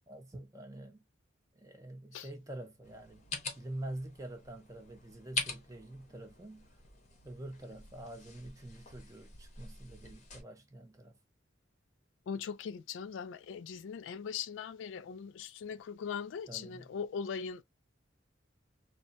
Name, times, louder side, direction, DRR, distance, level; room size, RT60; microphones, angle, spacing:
voice 1, 0.1-1.0 1.5-3.3 3.5-6.7 7.2-11.2 16.5-16.9, right 1 dB, 15° right, 0.7 m, -46 dB
sound 1, 2.8-10.4, left 4 dB, 35° left, 0.7 m, -44 dB
voice 2, 12.3-17.6, left 6 dB, 75° left, 0.3 m, -40 dB
3.2 x 2.0 x 2.5 m
head